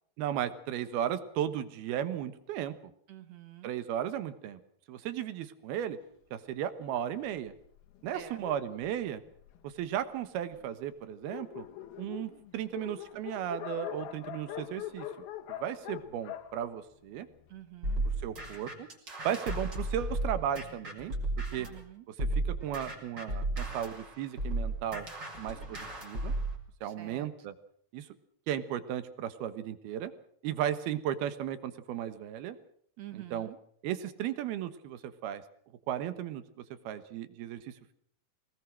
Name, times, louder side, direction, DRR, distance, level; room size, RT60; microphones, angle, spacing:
voice 1, 0.2-2.8 3.6-4.6 4.9-6.0 6.3-7.5 8.0-9.2 9.6-11.7 12.0-15.1 15.5-17.3 18.2-18.9 19.2-21.1 21.5-21.7 22.3-25.1 25.4-26.3 26.8-27.5 27.9-28.1 28.5-30.1 30.4-32.6 33.1-33.5 33.8-35.4 35.9-36.4 36.8-37.9, right 10 dB, 85° right, 12 dB, 3.3 m, -35 dB
voice 2, 3.1-3.7 8.1-8.4 17.5-18.0 21.6-22.0 26.8-27.3 33.0-33.6, right 12 dB, 65° right, 10 dB, 1.7 m, -48 dB
Dog, 6.8-9.8 10.5-10.6 10.9-11.0 11.2-17.6, left 11 dB, 80° left, 3.3 m, -43 dB
sound 1, 17.8-21.8 22.2-26.6, right 2 dB, 30° right, 4.6 m, -34 dB
23.0 x 19.5 x 6.3 m, 0.64 s
omnidirectional pair, 4.3 m